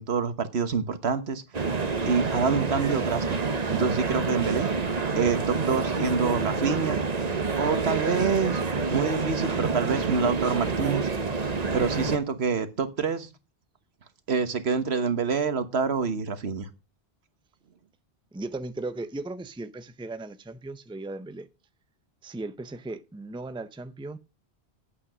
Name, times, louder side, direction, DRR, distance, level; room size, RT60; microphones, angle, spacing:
voice 1, 0.0-1.4 2.1-4.7 5.2-7.0 7.6-8.6 8.9-11.1 11.7-13.3 14.3-16.7, right 5 dB, 80° right, 1.4 m, -27 dB
sound 1, 1.5-12.2, right 4 dB, 40° right, 1.1 m, -28 dB
voice 2, 18.3-21.5 22.2-24.2, right 2 dB, 5° right, 0.5 m, -37 dB
8.5 x 8.5 x 6.1 m
omnidirectional pair, 1.1 m